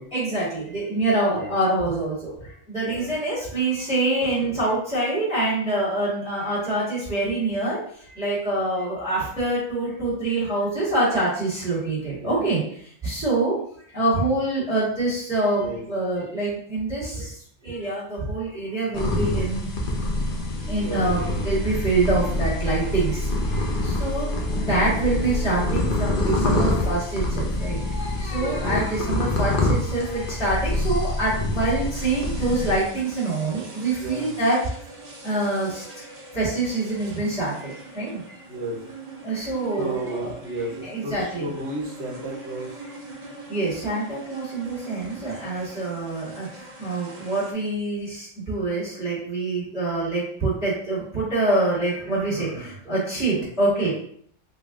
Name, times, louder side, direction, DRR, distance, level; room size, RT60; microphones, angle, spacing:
voice 1, 0.1-2.3 2.7-7.8 8.2-12.6 13.0-13.5 13.9-17.2 17.6-19.7 20.7-23.2 24.0-34.6 35.2-35.8 36.3-38.2 39.2-40.3 40.8-41.5 43.5-46.5 46.8-53.9, right 2 dB, 5° right, -8 dB, 1.4 m, -25 dB
sound 1, 18.9-32.8, left 2 dB, 50° left, 0.8 m, -27 dB
sound 2, 20.5-27.0, left 1 dB, 80° left, 1.6 m, -29 dB
voice 2, 20.8-21.4 26.4-26.8 28.4-28.8 33.9-34.3 38.5-38.8 39.8-42.7 53.3-53.5, right 1 dB, 60° right, -1 dB, 1.2 m, -33 dB
sound 3, 31.9-47.5, right 2 dB, 45° right, 0.6 m, -42 dB
3.7 x 2.4 x 3.5 m, 0.62 s
omnidirectional pair, 1.3 m